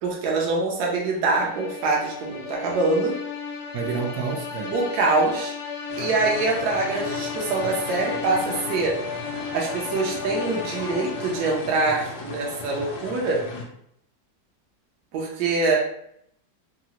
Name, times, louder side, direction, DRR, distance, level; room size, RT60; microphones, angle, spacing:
voice 1, 0.0-3.1 4.7-5.5 6.0-9.0 9.5-13.4 15.1-15.8, right 3 dB, 70° right, -2 dB, 1.1 m, -24 dB
sound 1, 1.1-12.1, left 5 dB, 90° left, 1.3 m, -34 dB
voice 2, 3.7-4.8, right 6 dB, 90° right, 3 dB, 0.7 m, -29 dB
sound 2, 5.9-13.6, left 3 dB, 75° left, 1.2 m, -37 dB
3.7 x 2.0 x 2.8 m, 0.70 s
omnidirectional pair, 1.9 m